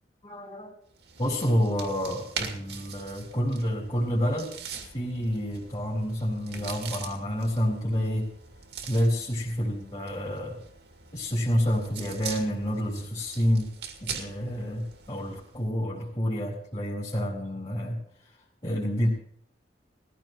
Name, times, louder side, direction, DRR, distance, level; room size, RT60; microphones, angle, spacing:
voice 1, 0.2-0.7 1.2-4.6 4.9-8.3 8.9-10.6 11.1-13.7 14.0-18.0 18.6-19.1, equal, 30° left, -5 dB, 3.6 m, -28 dB
sound 1, 0.9-15.6, right 6 dB, 70° right, 2.3 m, -42 dB
19.5 x 15.5 x 3.1 m, 0.66 s
head